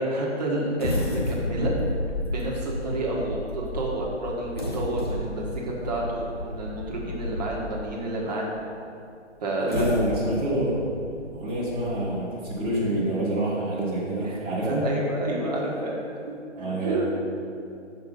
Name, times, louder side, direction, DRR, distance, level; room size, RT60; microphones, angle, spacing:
voice 1, 0.0-1.7 2.3-8.5 9.4-9.8 14.2-16.0 16.2-17.2, right 1 dB, 35° right, -3 dB, 1.4 m, -29 dB
sound 1, 0.8-7.9 8.5-8.6 9.5-13.0 13.5-13.6 14.0-14.2, left 1 dB, 20° left, 0.5 m, -32 dB
voice 2, 9.7-10.8 11.3-14.8 16.5-17.0, right 1 dB, 10° right, -12 dB, 1.0 m, -27 dB
6.8 x 5.5 x 5.4 m, 2.4 s
figure-of-eight pair, 140°, 36 cm